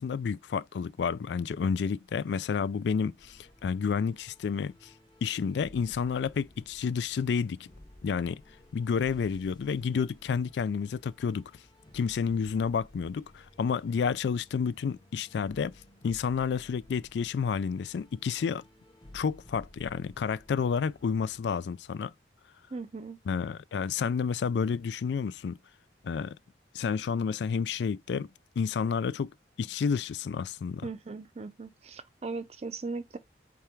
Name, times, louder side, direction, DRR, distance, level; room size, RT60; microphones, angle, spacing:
voice 1, 0.0-4.9 5.2-7.7 8.0-8.4 8.7-11.4 11.9-15.7 16.0-18.6 19.1-22.1 23.3-25.6 26.0-26.4 26.7-28.3 28.6-29.3 29.6-30.9, left 6 dB, 75° left, 0.3 m, -30 dB
sound 1, 3.2-21.4, left 1 dB, 25° left, 0.8 m, -56 dB
voice 2, 22.7-23.2 30.8-33.2, right 3 dB, 35° right, 0.5 m, -38 dB
3.5 x 3.3 x 4.5 m
head